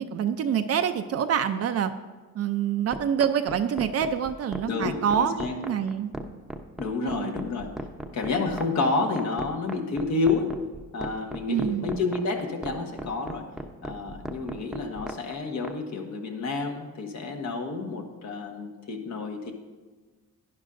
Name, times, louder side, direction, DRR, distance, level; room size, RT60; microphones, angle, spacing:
voice 1, 0.0-1.9 2.3-6.1 7.0-7.3 11.5-11.9, right 8 dB, 55° right, 8 dB, 0.5 m, -26 dB
sound 1, 2.9-15.7, right 1 dB, ahead, 0.8 m, -36 dB
voice 2, 4.7-5.6 6.8-7.7 8.1-10.6 10.9-13.5 13.8-19.5, left 3 dB, 65° left, 2 dB, 1.4 m, -29 dB
11.0 x 9.8 x 2.6 m, 1.3 s
cardioid pair, 90°, 30 cm